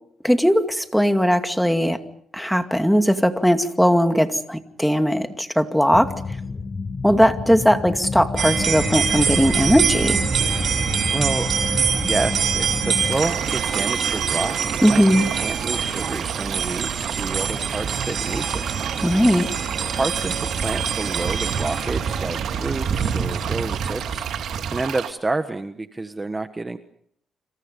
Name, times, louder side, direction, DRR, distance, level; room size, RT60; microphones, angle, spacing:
voice 1, 0.2-2.0 2.3-6.1 7.0-10.2 14.8-15.3 19.0-19.5, equal, ahead, 7 dB, 2.3 m, -18 dB
sound 1, 5.9-13.2, left 4 dB, 30° left, 1.4 m, -30 dB
Cookie triangle traditional, 8.4-24.8, right 6 dB, 55° right, 3.7 m, -25 dB
voice 2, 11.1-14.5 14.9-15.0 15.3-18.7 19.9-24.3 24.7-26.8, right 2 dB, 20° right, 9 dB, 1.3 m, -29 dB
sound 2, 13.1-25.1, right 9 dB, 75° right, 2.2 m, -33 dB
29.5 x 27.0 x 5.4 m, 0.67 s
cardioid pair, 90°, 0 cm